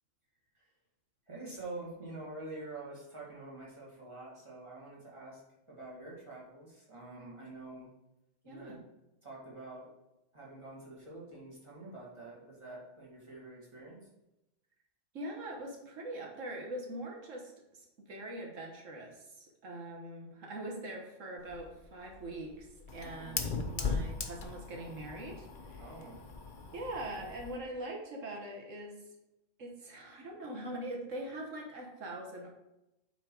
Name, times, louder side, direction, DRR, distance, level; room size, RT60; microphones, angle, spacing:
voice 1, 1.3-5.4 5.7-7.9 8.4-8.8 9.2-10.0 10.3-14.1 23.0-23.5 25.8-26.2, right 2 dB, 25° right, -5 dB, 2.2 m, -47 dB
voice 2, 8.4-8.8 15.1-25.8 26.7-29.0 29.6-32.5, right 1 dB, 85° right, 1 dB, 1.6 m, -42 dB
Fire, 21.4-27.6, left 4 dB, 45° left, 0.9 m, -39 dB
8.5 x 4.0 x 4.6 m, 0.93 s
omnidirectional pair, 1.3 m